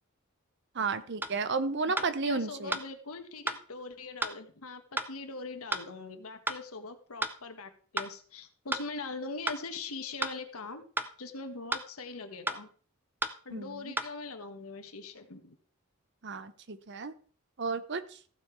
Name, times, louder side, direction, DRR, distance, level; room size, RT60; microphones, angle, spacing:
voice 1, 0.7-2.8 13.5-13.9 16.2-17.1 17.6-18.2, right 4 dB, 55° right, 13 dB, 0.9 m, -33 dB
sound 1, 1.2-1.4 2.0-2.1 2.7-2.9 3.5-3.6 4.2-4.4 5.0-5.1 5.7-5.9 6.5-6.6 7.2-7.4 8.0-8.1 8.7-8.9 9.5-9.6 10.2-10.4 11.0-11.1 11.7-11.9 12.5-12.6 13.2-13.4 14.0-14.1, right 1 dB, 10° right, 0.7 m, -32 dB
voice 2, 1.9-10.8 11.2-12.7 13.4-15.6, left 3 dB, 85° left, 7 dB, 1.5 m, -42 dB
15.0 x 7.0 x 4.6 m, 0.43 s
head